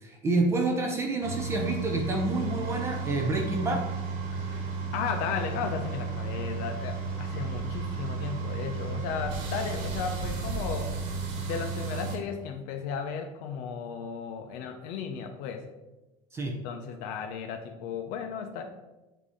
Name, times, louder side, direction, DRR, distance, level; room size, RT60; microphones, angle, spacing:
voice 1, 0.0-3.9 16.3-16.6, right 2 dB, 15° right, 2 dB, 0.5 m, -28 dB
sound 1, 1.2-12.2, right 4 dB, 90° right, 1.4 m, -33 dB
voice 2, 4.4-11.0 11.5-15.7 16.6-18.6, left 6 dB, 60° left, 4 dB, 0.6 m, -35 dB
7.5 x 2.8 x 4.9 m, 1.0 s
cardioid pair, 180°, 15 cm